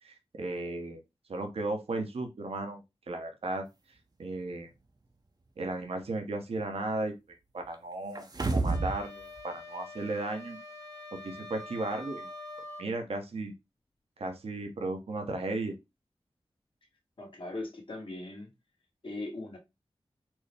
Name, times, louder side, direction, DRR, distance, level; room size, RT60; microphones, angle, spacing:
voice 1, 0.0-1.0 1.3-3.7 4.2-4.7 5.6-7.1 7.5-10.6 11.1-12.3 12.8-13.5 14.2-15.8, right 2 dB, 75° right, 0.9 m, -35 dB
sound 1, 8.2-9.0 9.4-9.5, right 3 dB, 40° right, 0.6 m, -29 dB
sound 2, 8.7-12.9, left 2 dB, 35° left, 1.3 m, -45 dB
voice 2, 17.2-18.5 19.0-19.6, left 2 dB, 60° left, 1.5 m, -39 dB
4.5 x 2.0 x 3.4 m
wide cardioid pair, 55°, 10 cm